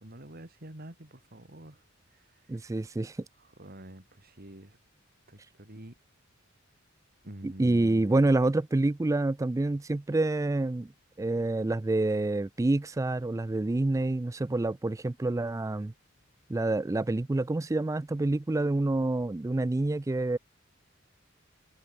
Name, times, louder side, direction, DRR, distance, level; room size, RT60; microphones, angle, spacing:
voice 1, 0.0-2.7 3.4-4.8 5.3-6.0 7.2-8.2, right 1 dB, 50° right, 3.2 m, -48 dB
voice 2, 2.5-3.2 7.4-10.9 11.2-15.9 16.5-20.4, right 2 dB, 15° right, 0.3 m, -27 dB
head